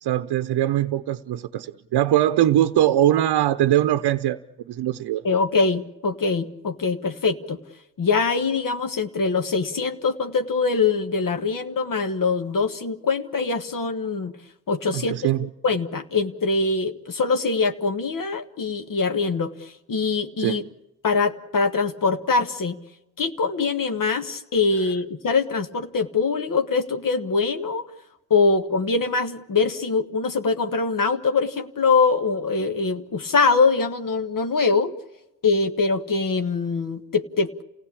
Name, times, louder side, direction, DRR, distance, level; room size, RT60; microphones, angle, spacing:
voice 1, 0.0-4.4 4.7-5.2 14.9-15.5 20.4-20.7, right 12 dB, 85° right, 0.8 m, -21 dB
voice 2, 5.2-7.6 8.0-14.3 14.7-15.2 15.6-20.6 21.0-22.8 23.2-27.9 28.3-34.9 35.4-37.6, left 4 dB, 55° left, 1.6 m, -23 dB
28.5 x 16.5 x 8.5 m
cardioid pair, 65°, 38 cm